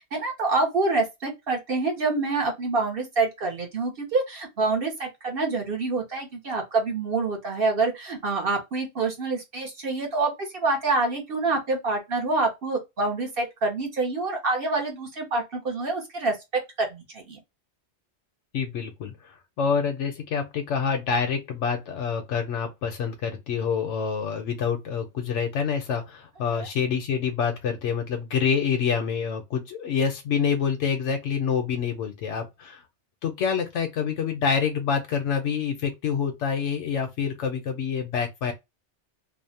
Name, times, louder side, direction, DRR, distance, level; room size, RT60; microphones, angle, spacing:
voice 1, 0.0-16.4 16.8-17.4 26.5-26.7, right 3 dB, 55° right, 0.9 m, -26 dB
voice 2, 18.5-32.8 33.2-38.5, left 6 dB, 90° left, 1.0 m, -27 dB
2.7 x 2.0 x 2.6 m
omnidirectional pair, 1.2 m